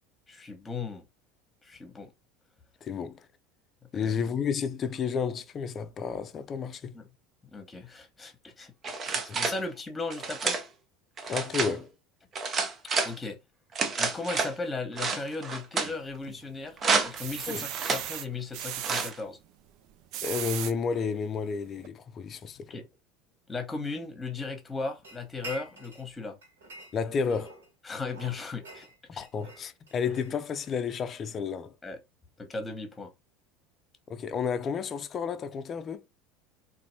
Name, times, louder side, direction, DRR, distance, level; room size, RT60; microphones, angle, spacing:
voice 1, 0.3-1.0 1.6-2.1 3.9-4.1 6.9-7.0 7.4-8.7 9.0-10.6 13.0-13.4 14.0-16.8 17.0-19.4 22.7-22.8 23.5-26.4 27.8-29.2 31.8-32.0 32.4-33.1, left 3 dB, 15° left, 1.1 m, -36 dB
voice 2, 2.8-3.3 3.9-6.9 9.3-9.4 11.3-11.9 17.5-17.7 20.2-22.8 26.9-27.6 29.1-31.7 34.1-36.0, left 6 dB, 35° left, 0.5 m, -31 dB
sound 1, 8.8-9.6 10.1-10.6 11.2-11.7 12.3-13.1 13.7-14.5 15.0-15.9 16.8-17.3 17.7-18.0 18.8-19.2, right 4 dB, 35° right, 0.7 m, -29 dB
sound 2, 15.8-16.5 16.9-19.1 19.9-20.7 21.3-21.4 21.8-21.9, right 12 dB, 55° right, 0.4 m, -37 dB
sound 3, 25.0-26.1 26.4-27.7 28.1-30.8, right 2 dB, 80° right, 1.5 m, -47 dB
3.9 x 2.7 x 2.7 m
hypercardioid pair, 75°, 0 cm